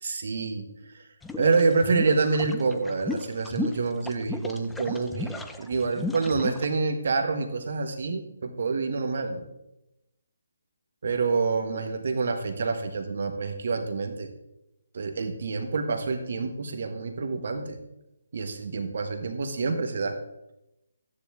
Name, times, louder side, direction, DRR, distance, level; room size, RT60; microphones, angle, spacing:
voice 1, 0.0-0.7 0.9-1.0 1.4-9.4 11.0-14.3 14.9-17.8 18.3-20.2, right 4 dB, 55° right, 6 dB, 1.4 m, -27 dB
sound 1, 1.2-6.7, left 3 dB, 5° left, 0.6 m, -34 dB
13.5 x 9.8 x 3.6 m, 0.90 s
figure-of-eight pair, 145°, 0 cm